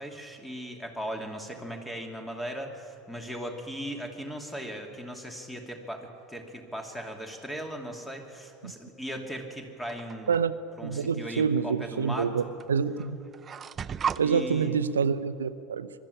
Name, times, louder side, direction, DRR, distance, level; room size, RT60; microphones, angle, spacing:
voice 1, 0.0-10.4 10.8-12.5 14.2-14.8, equal, 5° left, 2.8 m, -38 dB
sound 1, 9.9-10.4 11.6-11.7 12.6-12.7 13.0-14.2, right 7 dB, 30° right, 0.4 m, -34 dB
voice 2, 10.8-12.4 12.7-13.2 14.2-15.9, right 6 dB, 80° right, 0.7 m, -27 dB
21.0 x 13.0 x 9.8 m
figure-of-eight pair, 75°, 0 cm